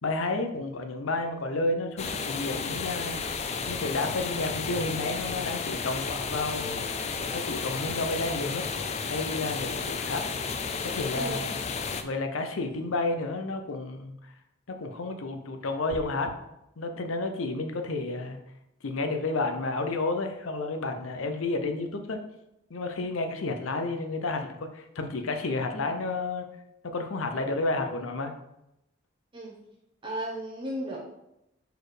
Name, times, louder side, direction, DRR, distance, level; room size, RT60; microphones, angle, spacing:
voice 1, 0.0-3.2 3.7-6.8 7.3-8.7 9.1-10.2 10.8-11.4 12.0-14.3 14.7-16.3 16.8-18.4 18.8-22.2 22.7-26.5 26.8-28.3, left 2 dB, 90° left, 6 dB, 0.7 m, -31 dB
sound 1, 2.0-12.0, left 5 dB, 30° left, 0.3 m, -32 dB
voice 2, 11.1-11.5 29.3-29.6 30.0-31.0, right 1 dB, 25° right, -3 dB, 0.8 m, -35 dB
sound 2, 15.9-16.4, right 3 dB, 85° right, 0.4 m, -41 dB
4.5 x 4.3 x 4.9 m, 0.86 s
head